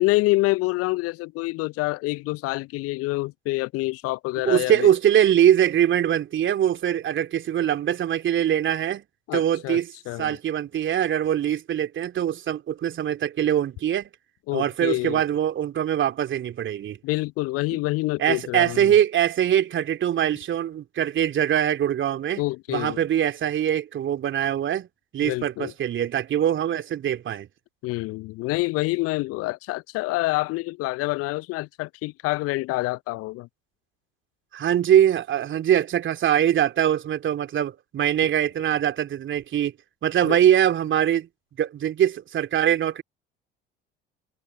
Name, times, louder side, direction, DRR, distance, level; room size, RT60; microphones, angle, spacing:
voice 1, 0.0-4.9 9.3-9.8 10.1-10.4 14.5-15.2 17.0-18.9 22.4-23.0 25.2-25.7 27.8-33.5 40.2-40.4, left 21 dB, 50° left, 0.9 m, -27 dB
voice 2, 4.4-9.0 9.3-9.9 10.2-14.1 14.5-17.0 18.2-22.4 22.7-24.9 25.1-27.5 34.5-39.7 40.0-41.3 41.6-43.0, right 10 dB, 40° right, 3.0 m, -22 dB
figure-of-eight pair, 60°, 30 cm